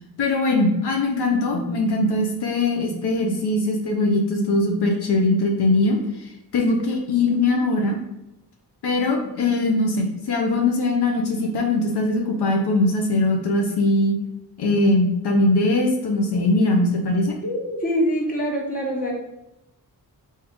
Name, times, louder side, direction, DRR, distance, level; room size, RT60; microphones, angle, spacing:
voice 1, 0.2-6.0 6.5-8.0 8.8-14.2 14.6-17.3, left 2 dB, 75° left, 1 dB, 0.7 m, -21 dB
voice 2, 17.4-19.1, equal, 20° left, -2 dB, 1.1 m, -24 dB
3.5 x 2.8 x 3.6 m, 0.89 s
cardioid pair, 80°, 41 cm